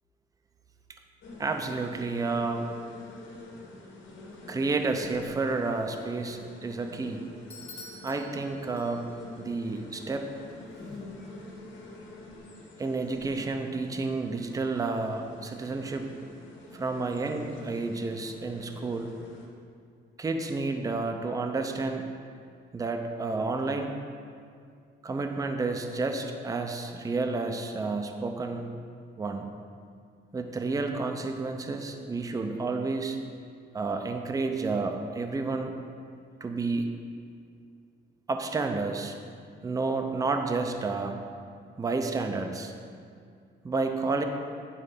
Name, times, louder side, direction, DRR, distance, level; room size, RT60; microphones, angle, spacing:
sound 1, 1.2-19.5, left 2 dB, 90° left, 1.8 m, -46 dB
voice 1, 1.4-2.7 4.5-7.2 8.0-9.0 9.4-10.3 12.8-16.1 16.7-19.1 20.2-22.1 22.7-23.9 25.0-28.7 29.2-29.5 30.3-33.2 33.7-35.7 36.4-36.9 38.3-39.2 39.6-41.2 41.8-42.7 43.6-44.2, right 3 dB, 20° right, 5 dB, 0.5 m, -30 dB
Bell / Doorbell, 7.5-9.3, left 2 dB, 35° left, 0.9 m, -48 dB
9.8 x 4.4 x 6.7 m, 2.3 s
cardioid pair, 150°, 19 cm